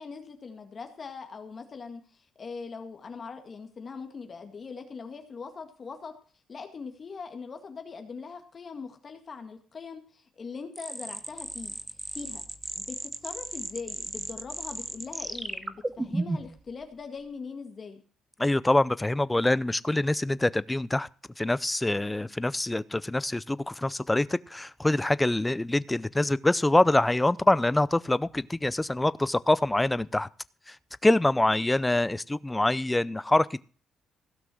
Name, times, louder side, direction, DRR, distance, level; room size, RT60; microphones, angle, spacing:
voice 1, 0.0-6.1 6.5-12.4 12.7-18.0, left 5 dB, 40° left, 5 dB, 1.9 m, -41 dB
sound 1, 10.8-16.6, right 2 dB, 20° right, 1.1 m, -35 dB
voice 2, 18.4-21.1 21.4-30.3 30.7-30.8 31.0-33.6, left 2 dB, 10° left, 19 dB, 0.6 m, -25 dB
16.0 x 6.1 x 7.7 m, 0.41 s
cardioid pair, 90°, 0 cm